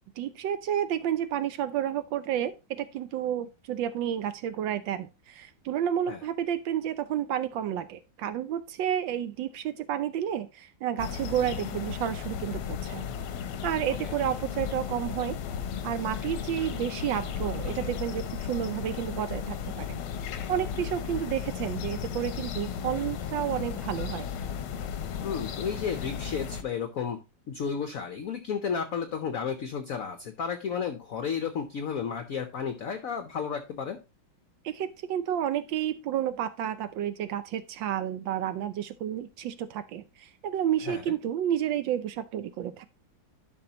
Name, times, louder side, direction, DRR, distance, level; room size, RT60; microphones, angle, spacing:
voice 1, 0.2-13.1 13.6-15.4 15.8-20.0 20.5-24.3 34.6-42.8, right 10 dB, 75° right, 12 dB, 1.2 m, -31 dB
sound 1, 11.0-26.6, left 8 dB, 90° left, 1.7 m, -35 dB
voice 2, 25.2-27.2 27.5-34.0 40.9-41.0, left 6 dB, 60° left, 8 dB, 0.9 m, -32 dB
11.5 x 5.4 x 2.9 m, 0.28 s
omnidirectional pair, 2.2 m